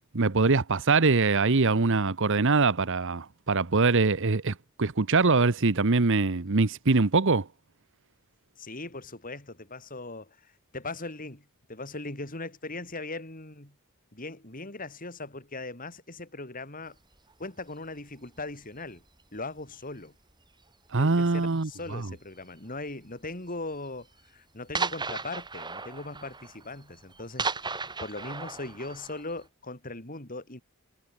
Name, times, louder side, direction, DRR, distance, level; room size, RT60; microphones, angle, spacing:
voice 1, 0.1-7.5 20.9-22.1, right 3 dB, 60° right, 1.0 m, -23 dB
voice 2, 8.6-13.7 14.1-17.0 17.4-19.0 19.3-20.1 21.0-27.5 28.0-30.6, left 2 dB, 40° left, 4.8 m, -39 dB
sound 1, 17.1-17.3 18.1-18.5 18.8-19.2 19.6-19.8 20.3-20.4 20.6-20.7 21.5-22.0 22.8-22.9 23.3-23.4 23.7-23.8 24.1-24.2 24.7-29.4, right 4 dB, 20° right, 4.1 m, -35 dB
head